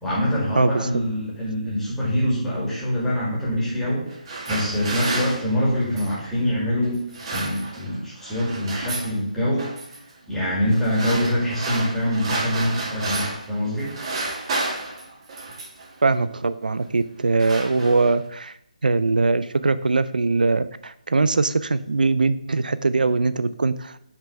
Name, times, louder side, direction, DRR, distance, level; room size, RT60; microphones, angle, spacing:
voice 1, 0.0-4.1 4.5-7.0 7.3-14.0, equal, 5° left, -7 dB, 1.9 m, -24 dB
voice 2, 0.6-0.9 16.0-18.6 18.8-24.0, right 3 dB, 85° right, 14 dB, 0.4 m, -21 dB
sound 1, 4.0-6.2 6.9-9.1 9.6-10.0 10.7-13.5 13.8-15.9 16.6-16.9 17.2-18.3, right 2 dB, 35° right, 1.7 m, -31 dB
5.8 x 3.5 x 5.8 m, 0.77 s
figure-of-eight pair, 155°, 4 cm